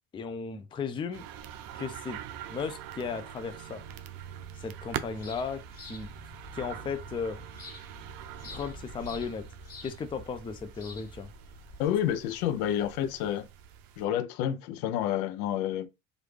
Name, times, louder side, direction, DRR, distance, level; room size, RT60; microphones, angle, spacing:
voice 1, 0.1-1.3 1.7-2.2 2.5-3.8 4.5-6.1 6.5-7.4 8.5-9.5 9.8-11.3, left 5 dB, 15° left, 0.3 m, -35 dB
sound 1, 1.1-14.1, right 10 dB, 55° right, 0.6 m, -44 dB
sound 2, 3.8-11.9, left 2 dB, 35° left, 1.7 m, -48 dB
voice 2, 11.8-13.5 14.0-15.9, left 11 dB, 85° left, 0.6 m, -29 dB
3.1 x 2.5 x 3.2 m
supercardioid pair, 95°, 42 cm